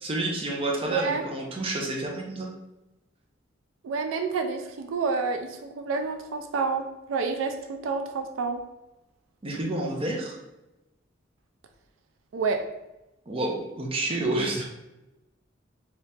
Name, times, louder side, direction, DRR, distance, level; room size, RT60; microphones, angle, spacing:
voice 1, 0.0-2.5 9.4-10.4 13.3-14.6, right 2 dB, 30° right, -1 dB, 0.6 m, -29 dB
voice 2, 0.9-1.2 3.8-8.6 12.3-12.6, right 4 dB, 85° right, 5 dB, 0.4 m, -29 dB
2.9 x 2.8 x 3.4 m, 0.97 s
head